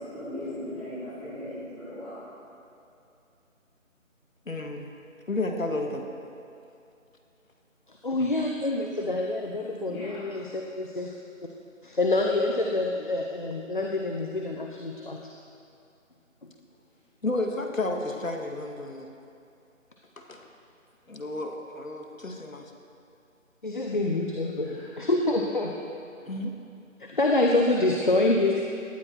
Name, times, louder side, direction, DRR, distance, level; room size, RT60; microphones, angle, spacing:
voice 1, 0.0-2.2 9.8-10.2 24.8-24.9, left 1 dB, 10° left, -15 dB, 4.1 m, -38 dB
voice 2, 4.5-4.9 5.3-6.1 8.2-8.4 17.2-19.1 20.2-20.5 21.1-22.7 26.2-26.5, left 2 dB, 80° left, 3 dB, 2.0 m, -32 dB
voice 3, 8.0-11.1 11.8-15.2 23.6-25.7 27.0-28.6, left 2 dB, 40° left, 1 dB, 1.0 m, -26 dB
18.0 x 13.5 x 4.6 m, 2.6 s
figure-of-eight pair, 170°, 40 cm